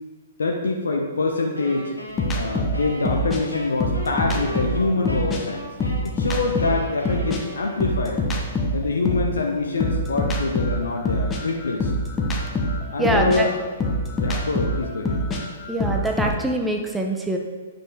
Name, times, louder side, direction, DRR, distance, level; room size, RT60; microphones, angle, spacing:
voice 1, 0.4-1.9 2.3-5.6 6.0-8.2 8.7-11.9 12.9-13.6 14.2-15.2, left 3 dB, 70° left, 1 dB, 0.8 m, -25 dB
Wind instrument woodwind instrument, 1.5-8.4, equal, 90° left, 1.8 m, -37 dB
sound 1, 2.2-5.4 5.8-9.3 9.8-16.3, left 1 dB, 15° left, 1.1 m, -25 dB
voice 2, 13.0-13.5 15.7-17.4, right 1 dB, 5° right, 2 dB, 0.9 m, -24 dB
9.0 x 5.4 x 3.7 m, 1.5 s
figure-of-eight pair, 115°, 0 cm